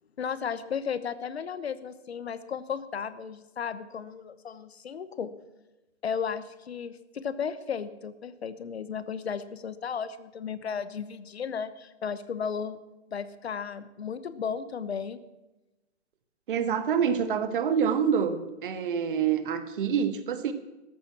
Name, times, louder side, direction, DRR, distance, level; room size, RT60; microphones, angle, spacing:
voice 1, 0.2-5.3 6.0-12.8 13.1-15.2, left 7 dB, 60° left, 14 dB, 1.2 m, -34 dB
voice 2, 16.5-20.5, right 7 dB, 45° right, 10 dB, 1.6 m, -26 dB
14.0 x 12.5 x 6.0 m, 1.0 s
figure-of-eight pair, 135°, 36 cm